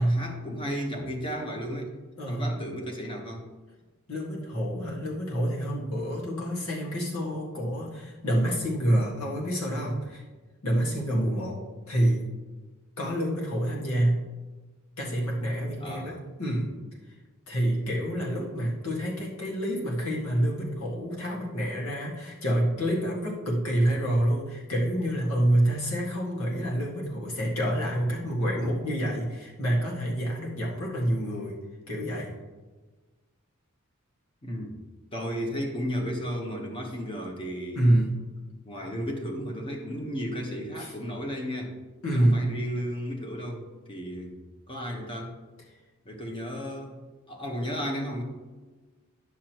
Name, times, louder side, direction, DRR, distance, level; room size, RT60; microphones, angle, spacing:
voice 1, 0.0-2.0 2.3-3.4 15.8-16.1 17.8-18.1 34.4-34.8 35.1-37.8 38.6-41.7 42.1-45.3 46.0-48.2, equal, 25° left, 1 dB, 1.2 m, -34 dB
voice 2, 2.2-2.6 4.1-10.2 10.6-11.6 11.9-12.3 13.0-14.2 15.0-16.7 17.5-31.6 31.9-32.4 37.8-38.2 40.8-40.9 42.0-42.5, right 1 dB, 75° left, -3 dB, 1.8 m, -27 dB
9.7 x 6.4 x 3.0 m, 1.3 s
head